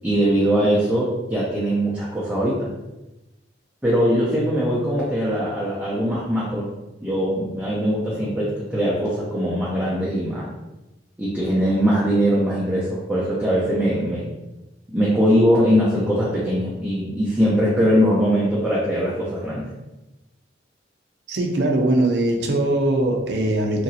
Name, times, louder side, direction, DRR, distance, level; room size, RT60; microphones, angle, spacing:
voice 1, 0.0-2.7 3.8-6.7 7.0-10.5 11.2-14.3 14.9-19.7, equal, 10° right, -8 dB, 0.5 m, -21 dB
voice 2, 21.3-23.8, right 1 dB, 65° right, 2 dB, 0.5 m, -21 dB
2.9 x 2.5 x 2.7 m, 1.0 s
head